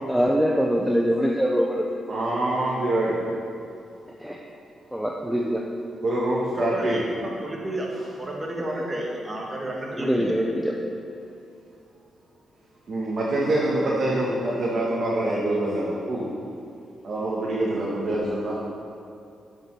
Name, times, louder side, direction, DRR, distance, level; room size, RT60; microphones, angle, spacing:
voice 1, 0.1-1.9 4.2-4.4 4.9-5.6 10.0-10.7, equal, ahead, 0 dB, 0.6 m, -23 dB
voice 2, 2.1-3.3 6.0-7.1 12.9-16.3 17.0-18.6, right 1 dB, 50° right, -6 dB, 1.6 m, -25 dB
voice 3, 6.4-7.9 8.2-10.3, right 1 dB, 25° right, -2 dB, 1.8 m, -32 dB
10.5 x 5.4 x 4.8 m, 2.5 s
cardioid pair, 80°, 0 cm